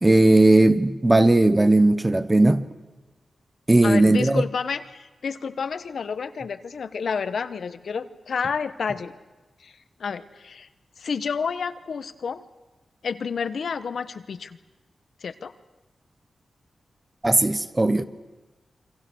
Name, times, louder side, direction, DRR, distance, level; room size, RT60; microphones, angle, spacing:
voice 1, 0.0-2.6 3.7-4.4 17.2-18.1, right 2 dB, 20° right, 1.0 m, -17 dB
voice 2, 3.8-9.2 9.6-10.7 11.0-12.4 13.0-14.6 15.2-15.5, left 6 dB, 70° left, 1.1 m, -30 dB
28.5 x 24.5 x 6.4 m
wide cardioid pair, 120°, 0 cm